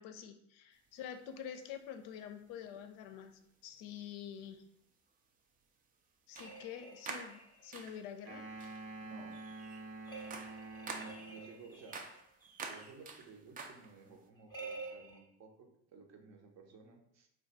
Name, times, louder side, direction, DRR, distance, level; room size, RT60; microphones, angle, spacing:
voice 1, 0.0-3.3 3.6-4.6 6.3-8.5, left 8 dB, 60° left, 7 dB, 0.5 m, -47 dB
sound 1, 1.0-1.1 2.7-2.9 3.9-4.0 6.3-6.7 7.0-8.1 8.6-8.9 9.3-14.2, right 4 dB, 25° right, 0.4 m, -48 dB
sound 2, 6.3-7.7 10.1-12.2 14.5-15.2, right 3 dB, 10° left, 0.7 m, -49 dB
sound 3, 8.2-11.6, right 3 dB, 70° right, 0.9 m, -47 dB
voice 2, 8.9-9.4 10.9-12.0 12.7-17.3, right 4 dB, 50° right, 3 dB, 0.7 m, -56 dB
2.3 x 2.2 x 3.9 m, 0.76 s
hypercardioid pair, 70°, 36 cm